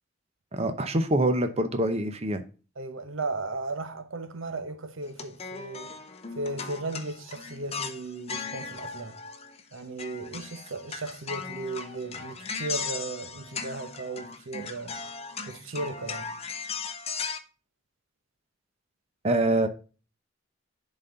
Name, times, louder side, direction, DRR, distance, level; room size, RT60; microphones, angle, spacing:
voice 1, 0.5-2.4 19.2-19.7, right 1 dB, 30° right, 0.7 m, -25 dB
voice 2, 2.8-5.9 6.4-9.2 9.7-14.9 15.5-16.3, right 3 dB, 85° right, 1.0 m, -36 dB
sound 1, 5.1-9.7 10.0-17.4, left 5 dB, 30° left, 0.7 m, -37 dB
10.5 x 4.1 x 3.8 m
head